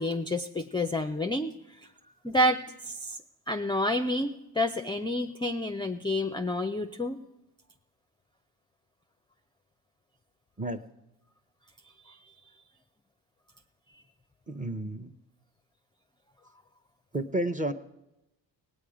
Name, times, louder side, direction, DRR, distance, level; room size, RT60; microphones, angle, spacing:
voice 1, 0.0-1.5 2.2-3.2 3.5-7.2 12.1-12.2, left 1 dB, 10° left, 7 dB, 0.5 m, -29 dB
voice 2, 14.5-15.1 17.1-17.7, right 1 dB, 15° right, 9 dB, 0.8 m, -31 dB
17.5 x 8.6 x 5.0 m, 0.94 s
supercardioid pair, 50°, 48 cm